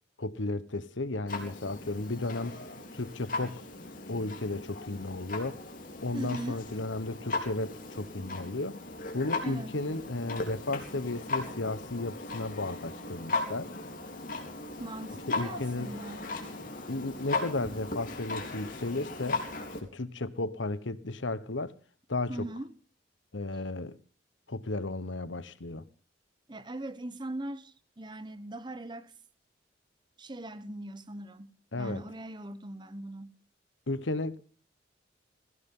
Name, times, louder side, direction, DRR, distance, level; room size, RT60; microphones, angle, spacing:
voice 1, 0.2-2.6 2.9-3.6 4.1-5.6 6.0-8.8 9.1-13.7 15.3-15.9 16.9-19.4 19.8-21.7 22.1-22.5 23.3-24.0 24.5-25.8 31.7-32.0 33.9-34.4, left 2 dB, 80° left, 1.1 m, -34 dB
Clock, 1.3-19.8, left 3 dB, 45° left, 3.7 m, -38 dB
voice 2, 6.1-6.6 9.4-9.7 14.8-16.3 22.3-22.7 26.5-29.1 30.2-33.4, right 1 dB, 25° right, 0.9 m, -40 dB
20.5 x 16.0 x 3.8 m
head